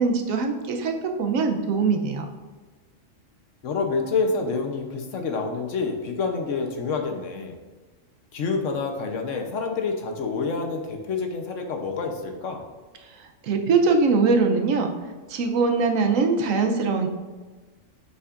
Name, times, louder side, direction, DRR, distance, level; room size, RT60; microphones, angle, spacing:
voice 1, 0.0-2.3 13.4-14.9 15.3-17.1, right 4 dB, 80° right, 5 dB, 1.1 m, -22 dB
voice 2, 3.6-7.6 8.3-12.6, left 4 dB, 70° left, 4 dB, 1.2 m, -27 dB
7.8 x 5.7 x 2.5 m, 1.3 s
omnidirectional pair, 1.4 m